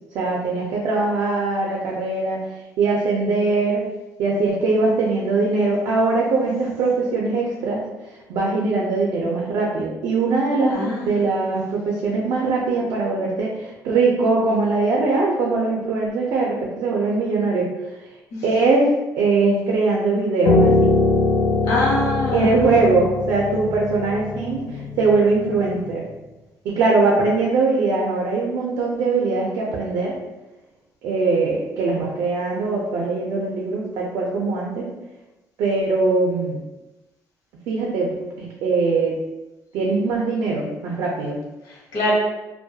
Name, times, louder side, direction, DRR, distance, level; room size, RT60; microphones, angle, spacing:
voice 1, 0.1-2.4 2.8-3.8 4.2-7.8 8.3-17.7 18.4-20.9 22.3-26.1 26.6-30.2 31.0-34.9 35.6-36.6 37.7-39.2 39.7-41.4, right 3 dB, 75° right, -3 dB, 0.4 m, -21 dB
voice 2, 10.7-11.3 18.3-18.4 21.7-22.7 41.7-42.1, left 1 dB, 65° left, -4 dB, 0.8 m, -24 dB
Piano, 20.5-25.7, left 3 dB, 35° left, 0.4 m, -22 dB
2.2 x 2.1 x 2.7 m, 1.0 s
cardioid pair, 170°, 7 cm